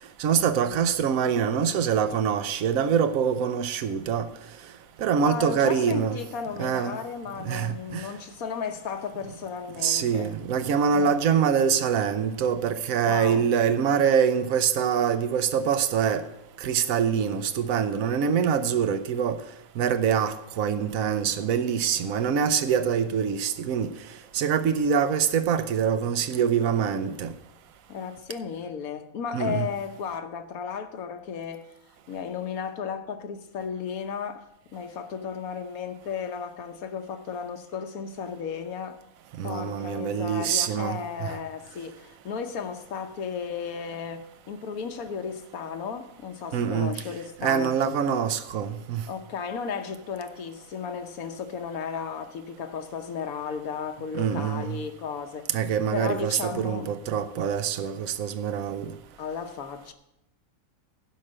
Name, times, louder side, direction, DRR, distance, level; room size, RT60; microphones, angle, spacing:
voice 1, 0.2-4.3 5.0-6.2 6.6-7.0 7.4-8.1 9.8-16.2 16.6-19.4 19.8-23.9 24.3-27.3 29.3-29.7 39.4-41.3 46.5-46.9 47.4-49.0 54.1-54.8 55.5-58.9, right 7 dB, 75° right, 1.1 m, -25 dB
voice 2, 5.2-10.4 10.9-11.2 13.0-13.5 27.9-31.7 32.1-39.0 39.4-47.8 49.1-55.6 55.9-56.9 59.2-59.9, left 6 dB, 80° left, 1.4 m, -34 dB
11.5 x 5.0 x 8.6 m
omnidirectional pair, 1.5 m